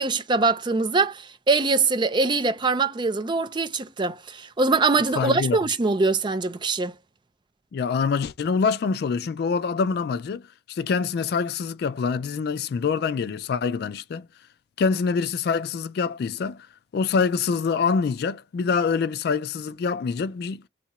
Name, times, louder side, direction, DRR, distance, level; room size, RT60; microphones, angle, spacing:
voice 1, 0.0-6.9, right 3 dB, 25° right, 0.4 m, -23 dB
voice 2, 5.2-5.6 7.7-10.4 10.7-14.3 14.8-16.7 16.9-20.6, left 5 dB, 55° left, 0.3 m, -25 dB
2.8 x 2.3 x 4.1 m
head